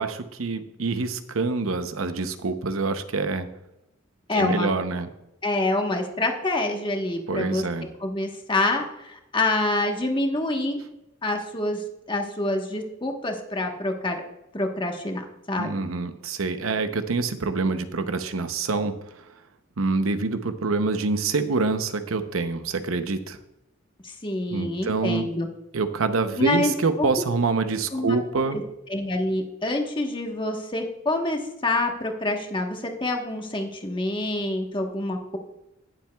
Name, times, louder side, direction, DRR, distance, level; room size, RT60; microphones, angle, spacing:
voice 1, 0.0-3.5 4.4-5.1 7.3-7.9 15.6-18.9 19.8-23.4 24.5-25.3 25.7-28.6, right 3 dB, 90° right, 9 dB, 0.8 m, -26 dB
voice 2, 4.3-4.7 5.4-7.6 8.0-10.8 11.2-14.2 14.5-15.7 24.0-25.5 26.4-26.7 27.0-27.1 27.9-28.6 28.9-35.4, left 2 dB, 25° left, 3 dB, 1.2 m, -27 dB
18.0 x 7.4 x 2.3 m, 0.86 s
head